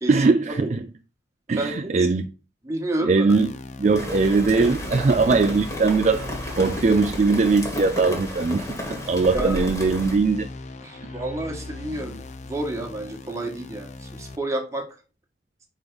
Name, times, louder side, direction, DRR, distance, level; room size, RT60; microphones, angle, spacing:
voice 1, 0.1-0.8 1.5-2.3 3.0-3.5 3.8-10.5 11.0-11.1, right 4 dB, 40° right, 0.4 m, -20 dB
voice 2, 1.5-2.1 2.6-3.3 9.3-9.6 10.8-14.9, right 2 dB, 15° right, 1.4 m, -30 dB
sound 1, 3.3-14.4, left 2 dB, 40° left, 0.6 m, -39 dB
Rain, 3.9-10.2, left 1 dB, 20° left, 1.7 m, -32 dB
5.3 x 4.6 x 5.3 m
head